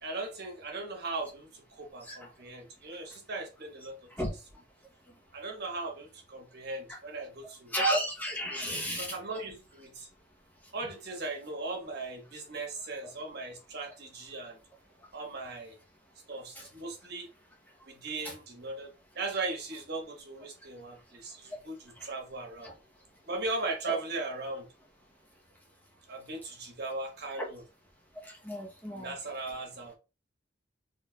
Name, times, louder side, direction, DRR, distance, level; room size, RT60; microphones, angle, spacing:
voice 1, 0.0-4.0 4.3-4.4 5.3-7.7 8.4-10.1 10.7-14.6 15.1-15.7 16.3-17.3 17.9-22.7 23.2-24.6 26.1-27.6 28.9-29.9, right 2 dB, 60° right, 1.2 m, -38 dB
voice 2, 7.7-9.1 23.9-24.0 28.5-29.1, right 1 dB, 10° left, 0.8 m, -31 dB
4.3 x 3.1 x 2.2 m
head